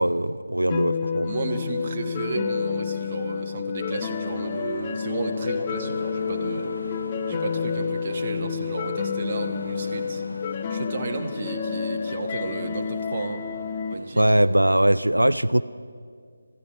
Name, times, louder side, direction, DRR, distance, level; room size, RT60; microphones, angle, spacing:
voice 1, 0.0-1.3 14.2-15.6, right 1 dB, 85° right, 13 dB, 0.4 m, -21 dB
sound 1, 0.7-13.9, left 6 dB, 20° left, 0.5 m, -29 dB
voice 2, 1.2-7.0 7.3-10.2 10.7-13.4 13.9-14.3, right 3 dB, 30° right, 3 dB, 1.3 m, -33 dB
sound 2, 4.2-14.6, left 1 dB, 80° left, 1.5 m, -43 dB
21.5 x 14.5 x 4.7 m, 2.1 s
figure-of-eight pair, 155°, 0 cm